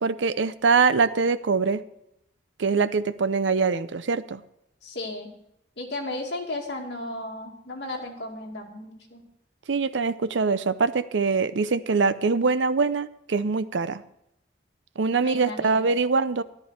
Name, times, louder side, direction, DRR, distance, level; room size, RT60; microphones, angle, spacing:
voice 1, 0.0-1.8 2.6-4.4 9.7-14.0 15.0-16.4, right 4 dB, 85° right, 14 dB, 0.6 m, -23 dB
voice 2, 4.8-5.3 5.8-9.2 15.2-15.9, left 2 dB, 65° left, 0 dB, 2.5 m, -34 dB
13.0 x 12.0 x 4.4 m, 0.81 s
head